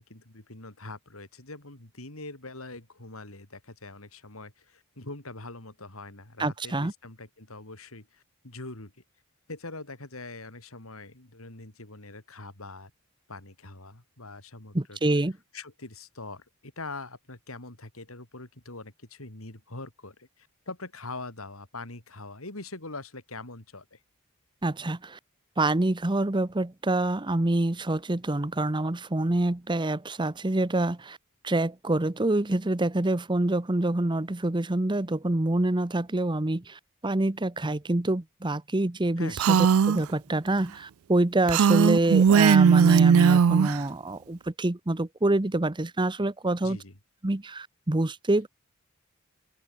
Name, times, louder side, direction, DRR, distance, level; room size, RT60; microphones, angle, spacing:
voice 1, 0.0-8.9 9.5-12.9 13.3-15.0 15.5-24.0 39.2-39.4 46.6-46.9, left 2 dB, 75° left, 4.4 m, -43 dB
voice 2, 6.4-6.9 14.7-15.4 24.6-25.2 25.6-31.2 31.4-46.8 47.2-48.5, right 2 dB, 20° right, 0.9 m, -26 dB
Female speech woman speaking, 39.4-40.0 41.5-43.8, right 6 dB, 80° right, 0.4 m, -18 dB
open air
head